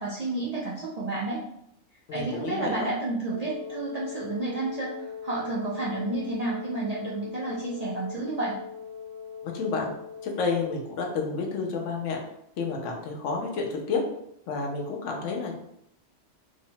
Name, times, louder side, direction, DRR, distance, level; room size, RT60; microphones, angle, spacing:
voice 1, 0.0-1.4 2.1-4.9 5.2-8.6, right 3 dB, 60° right, -5 dB, 0.4 m, -31 dB
voice 2, 2.1-2.9 9.4-9.9 10.2-12.2 12.6-14.0 14.5-15.5, left 4 dB, 85° left, 1 dB, 1.0 m, -30 dB
Wind instrument woodwind instrument, 3.3-11.1, left 6 dB, 40° left, 0.8 m, -40 dB
2.8 x 2.1 x 2.7 m, 0.74 s
omnidirectional pair, 1.2 m